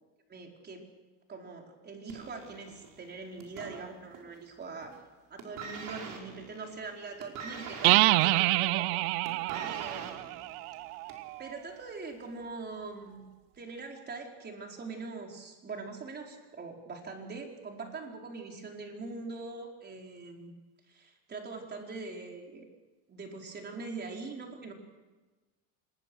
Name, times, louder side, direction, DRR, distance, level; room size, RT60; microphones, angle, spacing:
voice 1, 0.3-0.8 1.3-5.0 5.3-8.9 9.6-10.3 11.4-13.3 13.5-20.5 20.9-22.6 23.1-24.7, right 4 dB, 25° right, 1 dB, 4.7 m, -42 dB
sound 1, 2.1-4.4 4.7-5.1 5.4-11.3 12.2-12.3, right 5 dB, 45° right, 5.3 m, -44 dB
sound 2, 7.8-11.5, right 19 dB, 90° right, 0.8 m, -27 dB
27.0 x 20.5 x 6.4 m, 1.2 s
cardioid pair, 140°, 42 cm